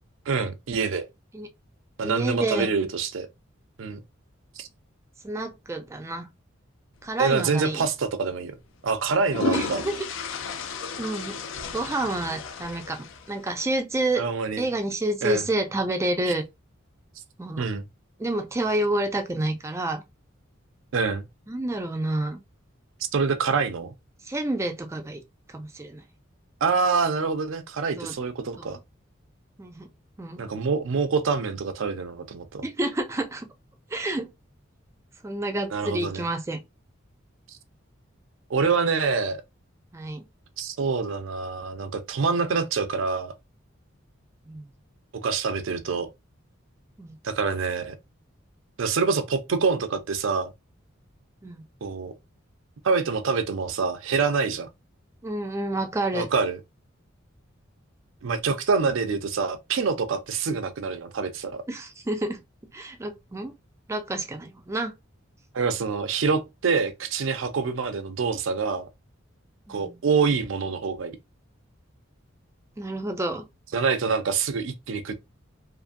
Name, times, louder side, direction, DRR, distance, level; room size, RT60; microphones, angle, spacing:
voice 1, 0.3-1.1 2.0-3.3 3.8-4.0 4.6-4.7 7.2-8.5 8.8-9.9 14.2-14.7 15.2-15.5 17.6-17.9 20.9-21.3 23.1-23.9 26.6-28.8 30.4-32.6 35.7-36.3 38.5-39.4 40.6-43.3 45.2-46.1 47.2-48.0 48.8-50.5 51.8-52.1 52.8-54.7 56.1-56.6 58.2-61.6 65.5-68.9 69.7-71.2 73.7-75.1, right 5 dB, 70° right, 0.5 m, -26 dB
voice 2, 2.0-2.7 5.2-6.3 7.0-7.9 9.5-9.9 11.0-11.4 11.7-14.2 14.6-16.4 17.4-17.6 18.2-20.0 21.5-22.4 24.2-25.2 25.5-26.0 28.0-28.2 28.6-28.8 29.6-29.9 30.2-30.5 32.6-33.5 33.9-34.3 35.2-36.6 39.9-40.2 44.5-44.7 47.0-47.2 51.4-51.6 55.2-56.3 61.7-62.4 62.7-63.5 63.9-64.9 69.7-70.0 72.8-73.5, right 1 dB, 15° right, 0.3 m, -29 dB
sound 1, 7.6-7.8 9.0-13.6, left 4 dB, 70° left, 0.4 m, -33 dB
2.5 x 2.5 x 2.5 m
head